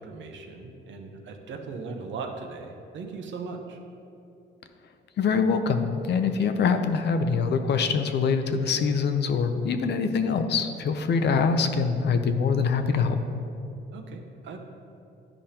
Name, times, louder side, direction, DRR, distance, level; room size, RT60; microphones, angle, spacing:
voice 1, 0.0-3.8 13.9-14.6, right 4 dB, 70° right, 4 dB, 0.8 m, -38 dB
voice 2, 5.2-13.2, left 5 dB, 60° left, 8 dB, 0.6 m, -24 dB
11.0 x 5.0 x 2.9 m, 2.8 s
cardioid pair, 90°, 20 cm